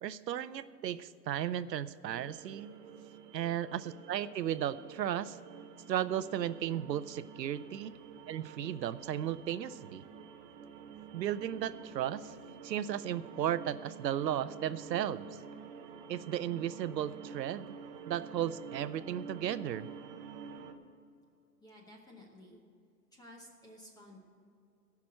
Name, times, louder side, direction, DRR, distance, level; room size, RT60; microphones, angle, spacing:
voice 1, 0.0-2.7 3.3-5.4 5.9-7.9 8.3-10.0 11.1-12.3 12.6-15.3 16.1-17.7 18.1-19.9, right 10 dB, 90° right, 16 dB, 0.6 m, -35 dB
sound 1, 2.0-20.7, right 7 dB, 30° right, 0.7 m, -49 dB
voice 2, 21.6-22.6 23.1-24.2, left 1 dB, 10° left, 0 dB, 0.9 m, -54 dB
14.5 x 6.0 x 7.5 m, 2.5 s
hypercardioid pair, 140°, 49 cm